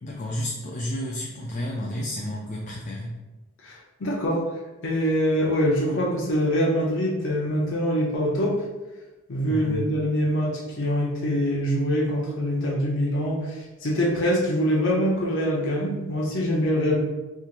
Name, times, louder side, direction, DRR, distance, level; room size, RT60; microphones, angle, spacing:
voice 1, 0.0-3.2 9.4-9.9, left 1 dB, 35° left, -2 dB, 0.4 m, -31 dB
voice 2, 3.6-4.4 4.8-8.5 9.3-17.0, equal, 60° left, -4 dB, 0.7 m, -24 dB
3.5 x 2.9 x 2.5 m, 1.1 s
head